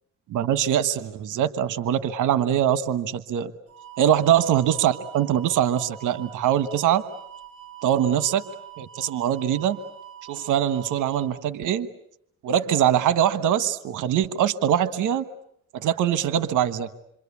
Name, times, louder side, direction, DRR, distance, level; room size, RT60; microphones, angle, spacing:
voice 1, 0.3-3.5 4.0-7.0 7.8-8.4 8.8-9.8 10.3-11.9 12.4-15.2 15.7-16.9, right 10 dB, 80° right, 14 dB, 1.3 m, -23 dB
sound 1, 3.7-11.3, right 11 dB, 55° right, 5.3 m, -43 dB
27.5 x 25.0 x 8.5 m, 0.74 s
cardioid pair, 90°, 30 cm